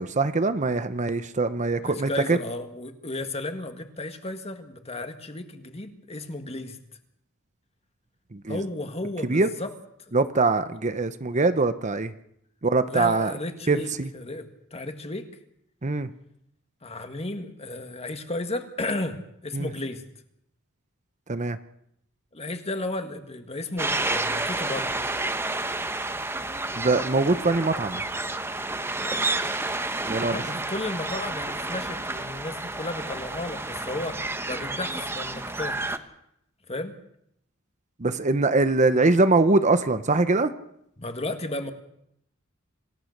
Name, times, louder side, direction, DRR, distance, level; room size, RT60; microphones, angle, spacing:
voice 1, 0.0-2.4 8.3-8.6 9.2-9.5 10.1-12.1 12.6-13.3 13.7-14.1 15.8-16.1 19.5-19.7 21.3-21.6 26.8-28.0 30.1-30.4 38.0-40.5, right 3 dB, 35° right, 11 dB, 0.8 m, -23 dB
voice 2, 1.8-6.8 8.5-9.7 10.1-10.2 12.9-15.3 16.8-20.0 22.3-24.9 30.3-35.8 36.7-37.0 41.0-41.7, left 2 dB, 30° left, 7 dB, 1.9 m, -33 dB
sound 1, 23.8-36.0, right 2 dB, 10° right, 1.1 m, -30 dB
26.5 x 16.5 x 6.6 m, 0.75 s
head